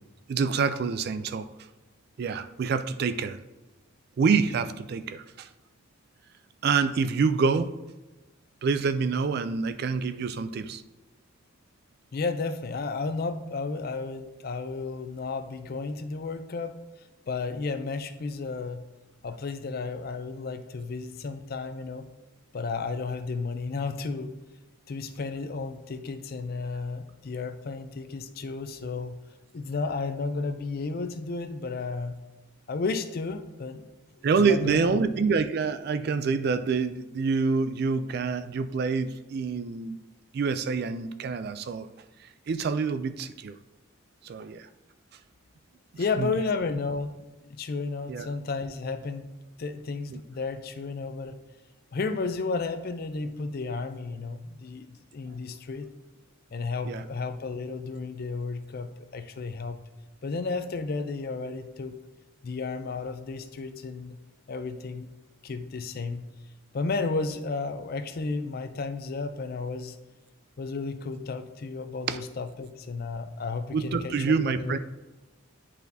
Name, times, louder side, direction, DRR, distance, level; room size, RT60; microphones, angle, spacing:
voice 1, 0.3-1.5 2.2-3.4 4.2-5.5 6.6-7.7 8.6-10.8 34.2-40.0 40.3-41.9 42.5-43.6 44.2-44.7 46.2-46.3 48.1-48.3 50.1-50.2 56.8-57.0 72.1-72.2 73.7-74.8, right 5 dB, 50° right, 12 dB, 0.3 m, -26 dB
voice 2, 12.1-16.8 17.3-18.8 19.2-22.1 22.5-24.3 24.9-29.2 29.5-32.2 32.7-33.8 34.1-35.0 46.0-49.3 49.6-51.4 51.9-54.9 55.1-55.9 56.5-59.8 60.2-62.0 62.4-64.2 64.5-65.1 65.4-66.2 66.7-70.0 70.6-74.8, left 4 dB, 45° left, 10 dB, 0.4 m, -33 dB
10.5 x 4.2 x 2.7 m, 1.1 s
head